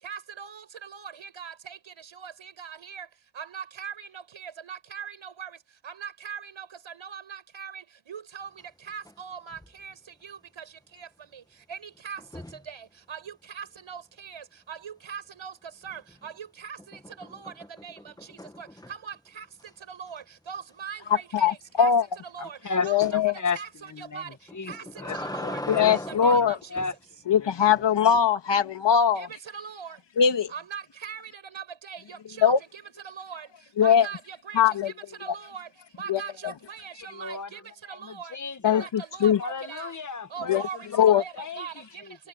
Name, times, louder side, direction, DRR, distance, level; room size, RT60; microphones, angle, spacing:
voice 1, 0.0-3.1 3.4-5.5 5.8-8.5 8.9-9.9 10.2-10.6 10.9-11.4 11.7-12.2 12.7-15.5 15.8-17.5 17.8-18.1 18.6-19.5 19.9-21.9 22.2-22.6 22.8-23.0 23.5-24.3 24.7-24.8 25.2-25.6 25.9-26.6 29.1-29.3 29.5-30.0 30.5-32.5 33.0-33.5 33.8-34.9 35.2-35.7 36.0-37.6 37.9-38.4 38.6-39.9 40.3-42.0, right 7 dB, 85° right, 7.7 m, -41 dB
sound 1, 8.6-9.2 9.5-9.8 12.2-12.7 15.8-16.3 16.8-19.2 19.6-19.7 20.1-20.2 20.5-20.6 23.0-23.2 24.5-27.0 27.7-28.2, left 1 dB, 10° left, 1.5 m, -40 dB
voice 2, 21.3-22.0 22.8-23.3 25.7-26.6 27.3-29.3 30.2-30.5 32.4-32.6 33.8-34.1 34.5-34.9 36.1-36.2 38.6-39.4 40.5-40.6 41.0-41.2, left 8 dB, 65° left, 1.8 m, -21 dB
voice 3, 22.4-23.6 23.9-24.7 25.0-26.9 27.2-27.8 37.1-38.9 39.4-42.2, left 4 dB, 40° left, 1.8 m, -35 dB
wide cardioid pair, 140°, 46 cm